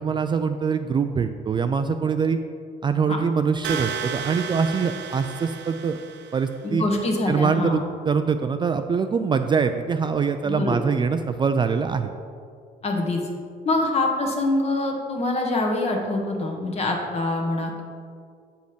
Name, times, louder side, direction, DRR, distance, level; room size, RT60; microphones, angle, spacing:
voice 1, 0.0-2.4 2.8-6.0 6.3-6.8 7.3-12.1, right 6 dB, 30° right, 8 dB, 0.3 m, -23 dB
sound 1, 3.6-6.6, right 7 dB, 85° right, 0.7 m, -33 dB
voice 2, 6.6-7.8 10.4-10.8 12.8-13.2 13.6-17.8, left 2 dB, 40° left, 2 dB, 1.4 m, -24 dB
7.9 x 5.2 x 5.1 m, 2.2 s
cardioid pair, 110°, 17 cm